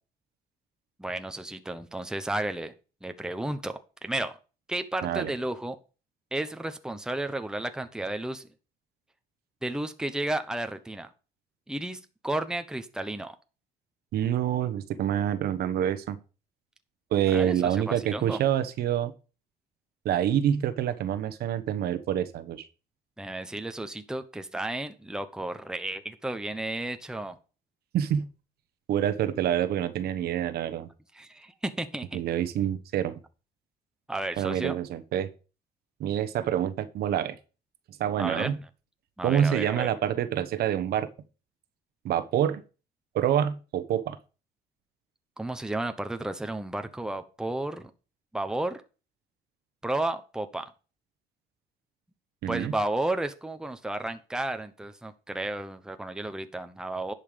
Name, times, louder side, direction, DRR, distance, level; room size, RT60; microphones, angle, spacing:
voice 1, 1.0-2.7 3.0-4.4 4.7-5.8 6.3-8.5 9.6-11.1 11.7-13.3 17.3-18.4 23.2-27.4 31.1-32.2 34.1-34.8 38.2-38.5 39.2-39.9 45.4-47.9 48.3-48.8 49.8-50.7 52.5-57.1, right 1 dB, 5° right, 0.9 m, -33 dB
voice 2, 14.1-16.2 17.1-19.1 20.0-22.6 27.9-28.2 28.9-30.9 32.1-33.2 34.4-35.3 36.0-37.4 38.0-38.6 39.2-41.1 42.0-42.6 43.1-44.2 52.4-52.7, right 10 dB, 65° right, 1.1 m, -27 dB
10.5 x 5.7 x 5.1 m
cardioid pair, 110°, 17 cm